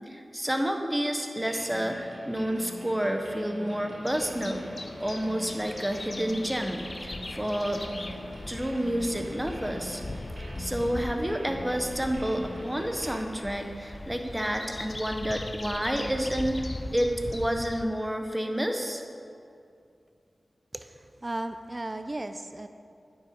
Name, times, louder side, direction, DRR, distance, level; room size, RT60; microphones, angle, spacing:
voice 1, 0.1-7.8 8.5-10.0 10.4-19.0, equal, 10° right, 4 dB, 0.9 m, -30 dB
sound 1, 1.4-13.2, equal, 70° right, 1.3 m, -44 dB
sound 2, 4.0-17.9, left 2 dB, 40° left, 0.4 m, -40 dB
voice 2, 20.7-22.7, right 2 dB, 35° right, 8 dB, 0.4 m, -36 dB
9.4 x 5.5 x 5.1 m, 2.4 s
wide cardioid pair, 50°, 0 cm